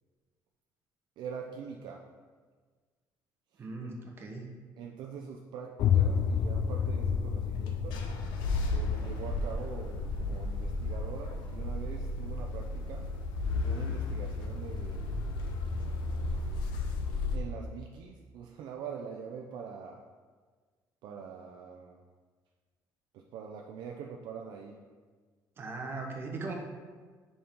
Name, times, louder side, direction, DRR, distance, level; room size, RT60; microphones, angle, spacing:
voice 1, 1.2-2.1 3.5-3.6 4.8-8.1 8.7-13.1 13.6-15.1 17.3-20.1 21.0-22.0 23.1-24.9, right 6 dB, 70° right, 1 dB, 0.5 m, -44 dB
voice 2, 3.6-4.5 25.6-26.5, right 3 dB, 30° right, 1 dB, 0.9 m, -39 dB
sound 1, 5.8-17.4, left 2 dB, 85° left, 0.8 m, -34 dB
sound 2, 5.8-11.4, left 7 dB, 55° left, 0.4 m, -31 dB
6.9 x 5.4 x 3.7 m, 1.5 s
cardioid pair, 160°, 8 cm